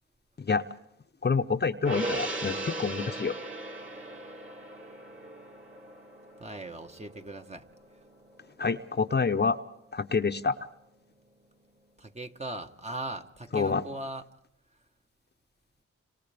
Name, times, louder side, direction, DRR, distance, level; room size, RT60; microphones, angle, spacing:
voice 1, 1.2-3.4 8.6-9.6 9.9-10.5 13.5-13.8, left 5 dB, 35° left, 8 dB, 0.8 m, -27 dB
Gong, 1.8-8.5 8.8-8.9, right 2 dB, 45° right, 3.1 m, -38 dB
voice 2, 6.4-7.7 12.0-14.2, right 2 dB, 25° right, 6 dB, 1.2 m, -39 dB
29.5 x 26.0 x 3.5 m, 0.77 s
cardioid pair, 60°, 29 cm